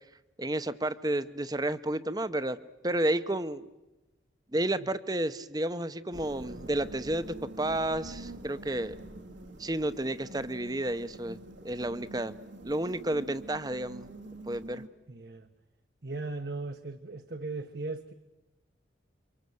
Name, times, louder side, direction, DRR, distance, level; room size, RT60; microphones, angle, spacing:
voice 1, 0.4-2.6 2.8-3.6 4.5-9.0 9.6-11.4 11.6-12.3 12.6-14.1 14.5-14.8, right 1 dB, 20° right, 14 dB, 0.8 m, -31 dB
sound 1, 6.1-14.9, right 2 dB, 80° right, 2.2 m, -46 dB
voice 2, 15.1-15.5 16.0-18.1, right 3 dB, 55° right, 7 dB, 1.1 m, -37 dB
28.5 x 25.0 x 7.9 m, 1.0 s
head